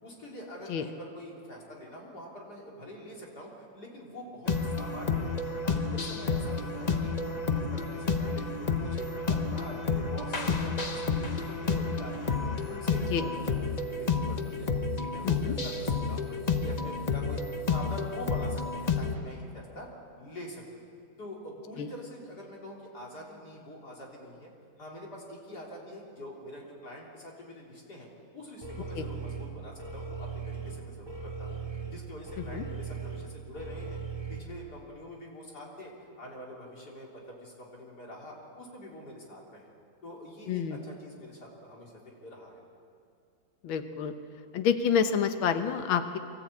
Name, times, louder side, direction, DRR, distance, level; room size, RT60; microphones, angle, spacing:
voice 1, 0.0-8.5 8.7-14.7 15.0-17.4 17.7-19.9 20.2-20.6 21.2-24.5 24.8-28.1 28.3-31.6 31.9-34.0 34.3-39.6 40.0-41.9 42.2-42.6, left 1 dB, 50° left, -3 dB, 4.0 m, -45 dB
sound 1, 4.5-19.1, left 4 dB, 30° left, 0.7 m, -30 dB
voice 2, 15.2-15.5 21.8-21.9 29.0-29.1 32.5-32.6 40.5-40.8 43.6-44.1 44.5-46.2, left 7 dB, 80° left, 8 dB, 1.8 m, -28 dB
sound 2, 28.6-34.4, right 5 dB, 15° right, 2.1 m, -38 dB
24.5 x 14.5 x 8.5 m, 2.4 s
omnidirectional pair, 2.2 m